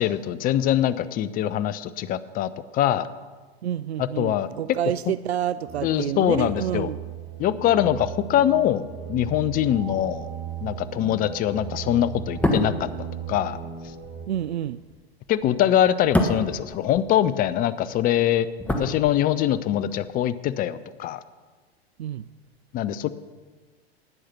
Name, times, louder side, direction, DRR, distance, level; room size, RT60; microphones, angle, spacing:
voice 1, 0.0-3.1 4.0-4.5 5.8-6.9 7.4-10.3 10.6-13.6 15.3-21.2 22.7-23.1, left 11 dB, 25° left, 0.6 m, -23 dB
voice 2, 3.6-7.0 14.3-14.8 22.0-22.3, right 11 dB, 80° right, 0.5 m, -28 dB
sound 1, 5.7-14.3, right 9 dB, 35° right, 2.5 m, -37 dB
sound 2, 12.2-17.6 17.8-19.7 19.9-20.1, equal, 5° left, 1.4 m, -28 dB
18.5 x 6.5 x 5.8 m
hypercardioid pair, 100°, 32 cm